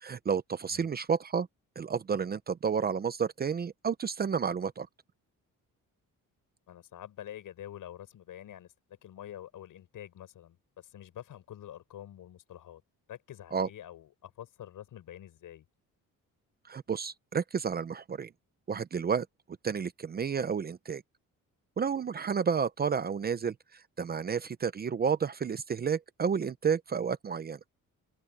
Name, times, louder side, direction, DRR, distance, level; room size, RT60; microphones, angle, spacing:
voice 1, 0.0-1.5 1.8-4.9 13.5-13.7 16.7-18.3 18.7-19.3 19.6-21.0 21.8-27.6, right 6 dB, 30° right, 0.5 m, -31 dB
voice 2, 6.7-8.7 9.0-12.8 13.1-15.6, left 11 dB, 75° left, 6.0 m, -47 dB
wide cardioid pair, 175°, 33 cm